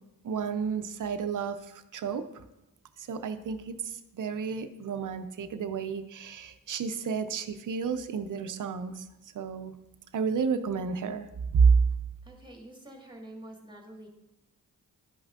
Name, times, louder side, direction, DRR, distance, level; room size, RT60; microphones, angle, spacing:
voice 1, 0.2-2.4 3.0-9.0 9.3-9.7 10.1-11.3 11.5-11.8, right 5 dB, 60° right, 9 dB, 0.6 m, -30 dB
voice 2, 12.2-14.1, right 1 dB, 15° right, 1 dB, 1.6 m, -47 dB
10.5 x 5.3 x 2.4 m, 0.89 s
cardioid pair, 50°, 36 cm